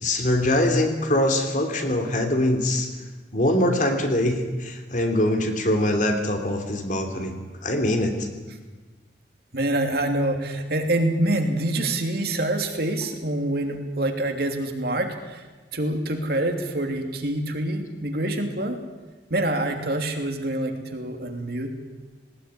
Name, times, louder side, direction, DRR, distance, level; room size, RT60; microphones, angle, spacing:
voice 1, 0.0-2.9 3.3-8.3, left 1 dB, 45° left, 5 dB, 3.1 m, -23 dB
voice 2, 9.5-15.4 15.7-18.8 19.3-21.7, right 1 dB, 60° right, 4 dB, 3.0 m, -26 dB
19.5 x 19.5 x 9.9 m, 1.3 s
head